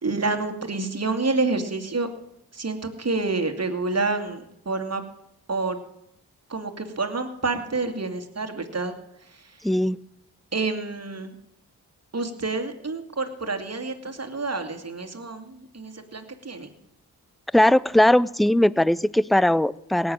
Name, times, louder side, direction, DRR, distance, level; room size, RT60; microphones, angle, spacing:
voice 1, 0.0-2.1 2.5-5.0 5.5-5.8 6.5-9.0 9.2-9.6 10.5-11.3 12.1-16.7, right 3 dB, 40° right, 6 dB, 2.4 m, -28 dB
voice 2, 9.6-10.0 17.5-20.1, left 1 dB, ahead, 21 dB, 0.5 m, -19 dB
17.5 x 7.2 x 8.8 m, 0.81 s
supercardioid pair, 40°, 40 cm